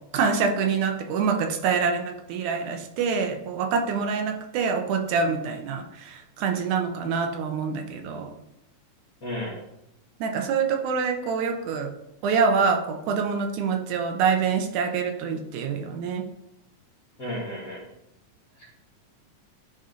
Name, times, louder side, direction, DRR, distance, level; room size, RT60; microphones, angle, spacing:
voice 1, 0.1-8.3 10.2-11.9 12.2-16.3, right 5 dB, 80° right, 4 dB, 2.3 m, -26 dB
voice 2, 9.2-9.6 17.2-17.9 18.5-18.7, left 1 dB, 40° left, -4 dB, 1.4 m, -33 dB
10.5 x 4.2 x 3.8 m, 0.83 s
omnidirectional pair, 3.4 m